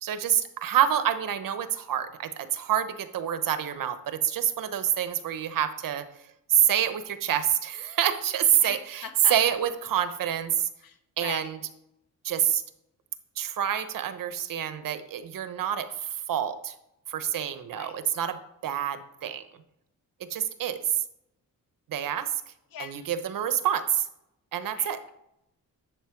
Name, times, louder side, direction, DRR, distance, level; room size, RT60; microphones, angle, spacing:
voice 1, 0.0-6.1 6.5-10.7 11.2-11.6 12.2-12.6 13.4-16.7 17.1-19.4 20.2-21.0 21.9-22.4 22.8-24.1 24.5-25.0, right 10 dB, 70° right, 11 dB, 1.0 m, -27 dB
voice 2, 9.0-9.3 10.8-11.5 17.7-17.9 22.7-23.1 24.8-25.1, left 7 dB, 80° left, 7 dB, 1.1 m, -41 dB
11.0 x 7.6 x 4.6 m, 0.84 s
wide cardioid pair, 145°, 34 cm